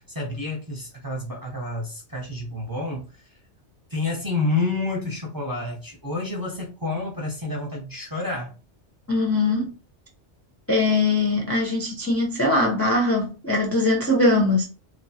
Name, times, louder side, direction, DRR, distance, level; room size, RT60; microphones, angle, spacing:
voice 1, 0.0-3.2 3.9-8.5, left 2 dB, 20° right, 0.7 m, -29 dB
voice 2, 9.1-9.7 10.7-14.7, left 2 dB, 15° left, 0.5 m, -21 dB
3.0 x 2.2 x 2.7 m
omnidirectional pair, 1.2 m